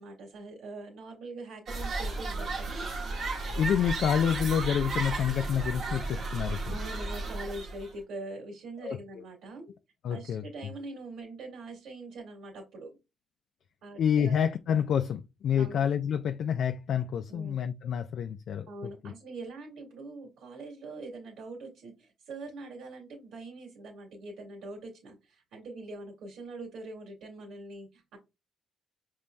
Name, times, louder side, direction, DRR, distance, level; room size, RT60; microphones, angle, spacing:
voice 1, 0.0-2.9 6.7-9.7 10.1-12.9 13.8-14.4 15.5-15.9 17.3-17.6 18.7-28.2, right 2 dB, 80° right, 1.8 m, -43 dB
sound 1, 1.7-7.9, right 3 dB, 60° right, 1.1 m, -34 dB
voice 2, 3.5-6.8 8.8-9.0 10.0-10.4 14.0-18.7 19.0-19.1, left 8 dB, 70° left, 0.3 m, -28 dB
5.3 x 3.0 x 2.2 m
cardioid pair, 90°, 0 cm